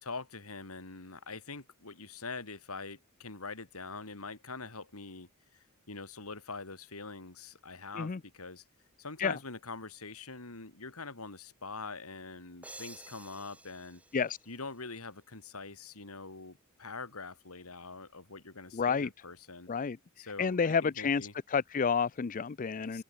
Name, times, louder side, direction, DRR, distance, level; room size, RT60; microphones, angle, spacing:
voice 1, 0.0-8.6 9.0-14.0 14.5-19.7 20.2-21.3 22.9-23.0, left 4 dB, 80° left, 3.2 m, -44 dB
sound 1, 12.6-15.3, right 2 dB, 5° right, 3.4 m, -52 dB
voice 2, 18.7-19.1 19.7-20.0 20.4-23.0, left 5 dB, 40° left, 0.4 m, -30 dB
open air
head